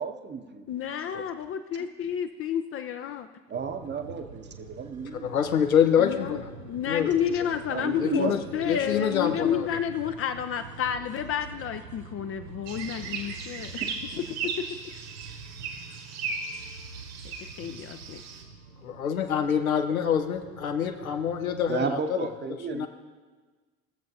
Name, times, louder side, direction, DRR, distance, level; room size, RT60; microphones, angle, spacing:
voice 1, 0.0-0.7 3.5-5.3 7.7-8.4 8.7-9.6 13.8-13.9 21.7-22.9, right 5 dB, 25° right, 6 dB, 0.9 m, -33 dB
voice 2, 0.7-3.3 6.0-14.2 17.2-18.2, left 9 dB, 35° left, 8 dB, 0.5 m, -30 dB
sound 1, 3.5-21.7, right 4 dB, 90° right, 0.6 m, -46 dB
voice 3, 5.2-6.5 6.9-7.1 8.0-9.7 18.8-22.0 22.7-22.9, left 8 dB, 85° left, 6 dB, 0.7 m, -26 dB
sound 2, 12.7-18.4, right 5 dB, 60° right, 1.6 m, -37 dB
18.0 x 7.3 x 2.7 m, 1.4 s
figure-of-eight pair, 60°, 41 cm